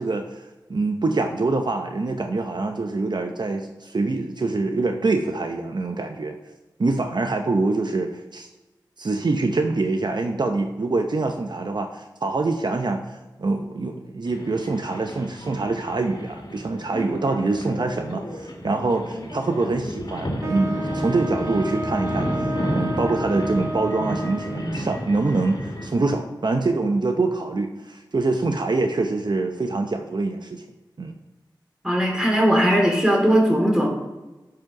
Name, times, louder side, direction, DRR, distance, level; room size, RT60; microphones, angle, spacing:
voice 1, 0.0-6.4 6.8-8.5 9.0-22.5 22.7-30.6 31.0-31.1, right 3 dB, 60° right, 4 dB, 0.7 m, -25 dB
sound 1, 14.3-25.9, equal, 60° left, 2.1 m, -31 dB
Wind instrument woodwind instrument, 20.4-24.8, right 1 dB, 35° right, 1.2 m, -31 dB
voice 2, 31.8-33.9, equal, 10° right, -1 dB, 3.2 m, -19 dB
10.5 x 5.0 x 6.0 m, 1.1 s
cardioid pair, 40°, 8 cm